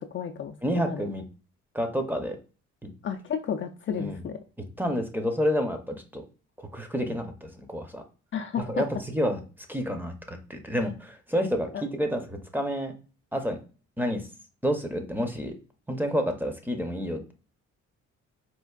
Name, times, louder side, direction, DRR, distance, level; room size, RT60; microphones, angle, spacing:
voice 1, 0.1-1.0 3.0-4.4 8.3-8.8 11.7-11.8, left 7 dB, 40° left, 5 dB, 0.4 m, -32 dB
voice 2, 0.6-1.2 1.7-2.4 2.8-2.9 3.9-4.2 4.8-6.2 6.6-8.0 8.7-9.4 9.7-12.9 13.3-13.6 14.0-14.2 14.6-15.5 15.9-17.3, equal, 5° right, 5 dB, 0.6 m, -29 dB
4.4 x 2.4 x 2.3 m, 0.35 s
cardioid pair, 90°, 30 cm